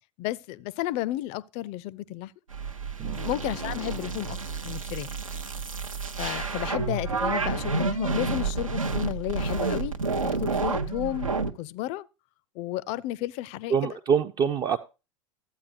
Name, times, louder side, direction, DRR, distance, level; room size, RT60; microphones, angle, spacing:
voice 1, 0.2-2.3 3.1-4.4 4.6-5.1 6.2-9.9 10.2-11.3 11.6-12.1 12.6-14.0, left 15 dB, 40° left, 0.4 m, -32 dB
sound 1, 2.5-11.5, right 4 dB, 85° right, 0.6 m, -30 dB
voice 2, 13.7-14.8, right 7 dB, 20° right, 0.4 m, -25 dB
13.0 x 8.7 x 2.5 m
figure-of-eight pair, 85°, 17 cm